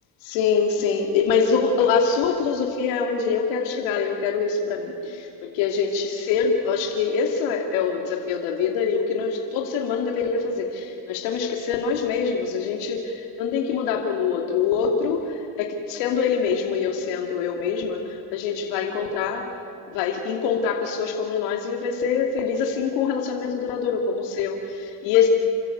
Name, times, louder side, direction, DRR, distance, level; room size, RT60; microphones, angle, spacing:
voice 1, 0.2-19.5 19.8-25.3, left 6 dB, 70° left, 1 dB, 2.8 m, -24 dB
28.0 x 14.0 x 8.2 m, 2.4 s
supercardioid pair, 120°, 48 cm